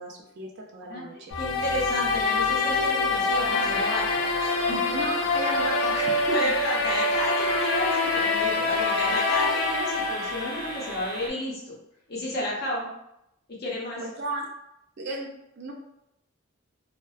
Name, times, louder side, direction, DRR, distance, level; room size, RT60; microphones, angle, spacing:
voice 1, 0.0-1.3 4.9-6.5 9.1-9.2 14.0-14.5 15.0-15.7, right 2 dB, 50° right, 1 dB, 0.4 m, -34 dB
voice 2, 0.9-4.9 6.3-11.8 12.1-12.9 13.5-14.0, left 1 dB, 45° left, -4 dB, 0.7 m, -32 dB
sound 1, 1.3-11.3, left 3 dB, 65° left, 0.3 m, -25 dB
sound 2, 1.3-11.3, right 2 dB, 80° right, 0.7 m, -40 dB
2.5 x 2.1 x 2.3 m, 0.82 s
head